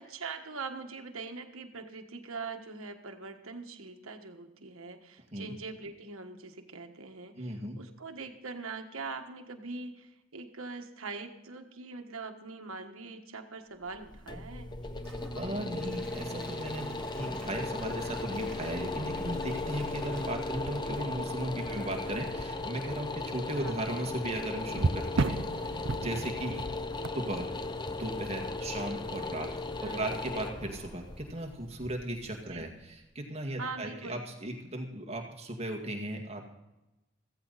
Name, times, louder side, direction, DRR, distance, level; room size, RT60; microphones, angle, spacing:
voice 1, 0.0-14.7 21.6-21.9 23.6-23.8 26.5-26.7 29.8-30.1 32.5-32.7 33.6-34.2, right 4 dB, 80° right, 5 dB, 1.5 m, -42 dB
voice 2, 7.4-7.8 15.4-25.4 25.7-26.5 27.1-27.5 27.9-29.5 29.8-36.4, right 1 dB, 30° right, 1 dB, 2.0 m, -37 dB
sound 1, 13.9-32.8, left 2 dB, 20° left, 0.7 m, -37 dB
Gurgling / Toilet flush / Trickle dribble, 14.8-21.8 22.3-22.4 22.8-22.9, right 1 dB, 5° left, 2.1 m, -53 dB
sound 2, 15.8-16.1 17.5-17.7 18.4-18.5 20.7-21.5 22.0-22.2 24.7-28.3 32.2-32.4, right 3 dB, 60° right, 0.6 m, -34 dB
15.5 x 15.0 x 4.1 m, 0.98 s
head